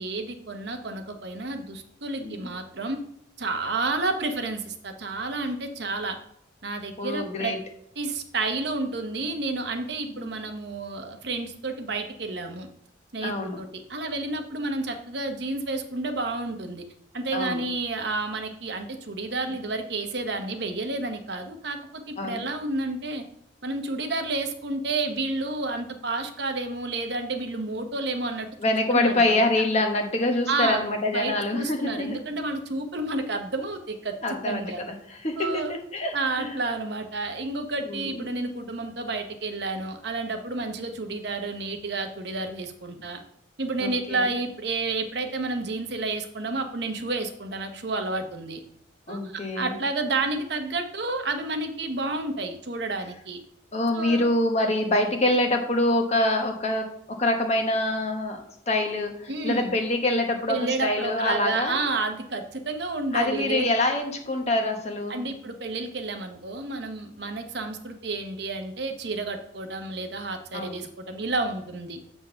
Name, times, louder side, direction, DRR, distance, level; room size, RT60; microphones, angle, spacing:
voice 1, 0.0-3.0 3.4-6.2 6.6-7.5 8.0-12.7 13.1-16.8 17.1-21.8 22.1-23.2 23.6-29.4 30.5-30.8 31.1-34.1 34.4-34.8 35.4-35.7 36.1-43.2 43.6-48.6 49.1-53.4 53.9-54.3 59.3-59.7 60.5-63.7 65.1-72.0, right 3 dB, 60° right, 6 dB, 0.9 m, -30 dB
voice 2, 7.0-7.6 10.0-10.3 13.2-13.6 17.3-17.6 22.2-22.4 28.6-32.2 34.2-36.6 37.8-38.3 43.1-43.2 43.8-44.3 49.1-49.7 53.7-61.7 63.1-65.2 70.5-70.9, left 1 dB, 35° left, 3 dB, 1.2 m, -26 dB
7.5 x 4.5 x 5.6 m, 0.73 s
head